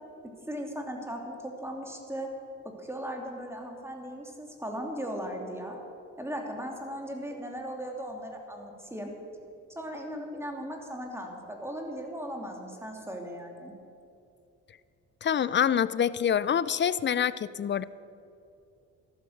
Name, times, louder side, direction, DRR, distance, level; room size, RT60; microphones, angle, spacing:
voice 1, 0.5-2.3 2.6-5.8 6.2-9.1 9.7-13.7, equal, 10° right, 2 dB, 2.8 m, -37 dB
voice 2, 15.2-17.8, left 8 dB, 40° left, 17 dB, 0.5 m, -26 dB
13.5 x 12.5 x 6.5 m, 2.7 s
cardioid pair, 90°, 30 cm